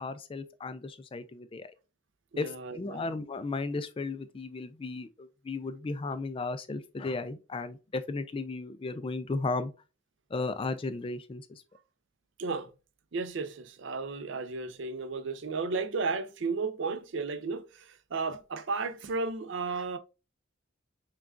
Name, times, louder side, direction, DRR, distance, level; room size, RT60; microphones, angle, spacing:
voice 1, 0.0-1.7 2.4-9.7 10.3-11.6, left 3 dB, 25° left, 0.3 m, -35 dB
voice 2, 2.3-3.1 12.4-12.7 13.1-20.0, right 4 dB, 60° right, 0.5 m, -34 dB
5.8 x 2.3 x 2.4 m
head